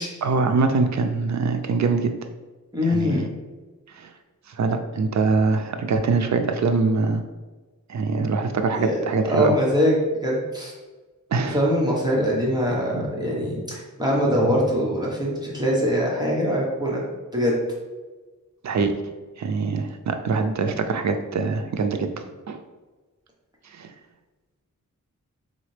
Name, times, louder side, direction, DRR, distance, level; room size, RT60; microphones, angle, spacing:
voice 1, 0.2-2.1 2.9-3.2 4.0-4.1 4.5-7.2 7.9-9.5 11.3-11.6 18.6-19.0 19.4-22.6 23.7-23.9, right 4 dB, 60° right, 7 dB, 0.5 m, -23 dB
voice 2, 2.7-3.3 8.7-9.0 9.3-9.9 10.2-10.7 11.5-17.0 17.3-17.6, equal, 15° right, -4 dB, 1.0 m, -23 dB
4.0 x 4.0 x 3.2 m, 1.3 s
wide cardioid pair, 110°, 32 cm